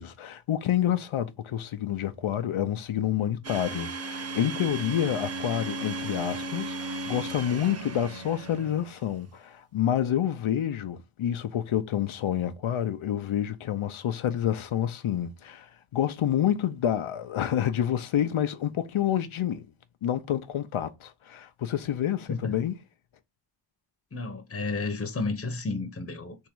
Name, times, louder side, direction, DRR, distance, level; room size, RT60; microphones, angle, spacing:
voice 1, 0.0-19.6 20.0-22.8, left 10 dB, 85° left, 0.6 m, -28 dB
Domestic sounds home sounds, 3.4-9.0, right 3 dB, 30° right, 0.6 m, -36 dB
Bowed string instrument, 3.9-9.0, right 1 dB, 75° right, 1.1 m, -44 dB
voice 2, 24.1-26.5, left 3 dB, 30° left, 0.8 m, -32 dB
3.6 x 3.1 x 4.5 m
wide cardioid pair, 65°, 48 cm